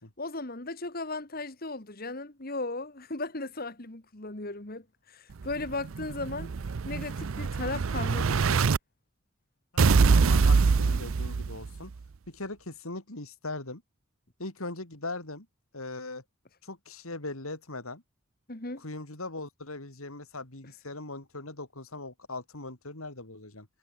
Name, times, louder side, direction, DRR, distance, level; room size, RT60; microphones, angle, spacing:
voice 1, 0.2-6.5 6.9-8.6 18.5-18.9, left 2 dB, 45° left, 2.1 m, -36 dB
Explosion, 5.4-8.8 9.8-11.8, right 5 dB, 70° right, 0.5 m, -24 dB
voice 2, 9.7-11.9 12.3-13.8 14.4-15.5 15.7-16.2 16.6-18.0 18.8-23.7, left 2 dB, 85° left, 4.2 m, -40 dB
head